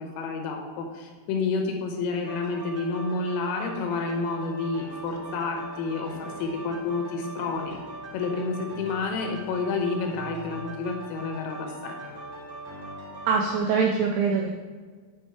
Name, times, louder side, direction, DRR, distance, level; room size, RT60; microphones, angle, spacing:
voice 1, 0.0-7.8 8.1-12.0, left 4 dB, 80° left, 2 dB, 3.6 m, -30 dB
sound 1, 2.2-13.6, right 1 dB, 50° right, 2.2 m, -41 dB
voice 2, 13.3-14.5, right 5 dB, 85° right, 0 dB, 2.6 m, -23 dB
8.4 x 5.3 x 4.6 m, 1.5 s
omnidirectional pair, 6.0 m